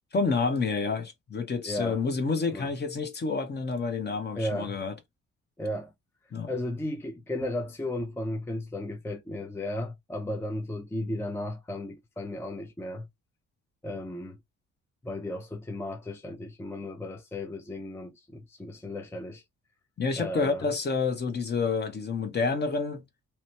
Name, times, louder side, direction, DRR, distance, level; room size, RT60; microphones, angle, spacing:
voice 1, 0.1-4.9 6.3-6.5 20.0-23.0, left 4 dB, 35° left, 0.8 m, -29 dB
voice 2, 1.6-2.0 2.5-2.7 4.3-4.8 5.6-5.9 6.5-13.1 13.8-14.4 15.0-19.4 20.2-20.7, left 1 dB, 10° left, 0.5 m, -35 dB
3.0 x 2.1 x 2.8 m
cardioid pair, 90°, 30 cm